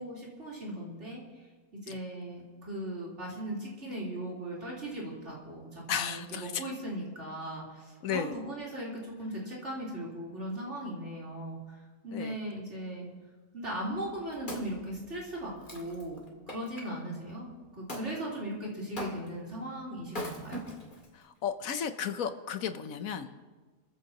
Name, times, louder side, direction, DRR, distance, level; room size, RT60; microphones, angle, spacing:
voice 1, 0.0-1.5 1.8-13.1 13.5-16.2 16.5-20.6, right 1 dB, 45° right, -4 dB, 4.1 m, -38 dB
voice 2, 5.9-6.7 8.0-8.3 12.1-12.4 21.1-23.4, left 7 dB, 60° left, 9 dB, 1.2 m, -34 dB
Wood, 13.9-16.9 17.9-18.1 19.0-19.5 20.1-21.1 21.7-21.8, left 1 dB, 30° left, 2.3 m, -41 dB
28.5 x 14.5 x 2.9 m, 1.3 s
omnidirectional pair, 1.7 m